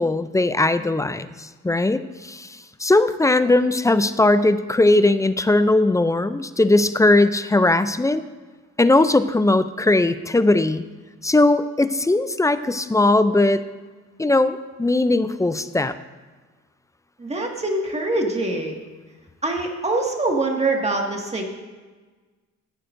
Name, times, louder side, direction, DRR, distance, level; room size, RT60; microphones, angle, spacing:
voice 1, 0.0-2.5 2.8-8.2 8.8-10.8 11.2-13.6 14.2-15.9, left 2 dB, 10° left, 12 dB, 0.4 m, -19 dB
voice 2, 17.2-18.8 19.4-21.5, right 2 dB, 20° right, 1 dB, 1.9 m, -24 dB
15.5 x 9.1 x 2.6 m, 1.3 s
cardioid pair, 90°, 30 cm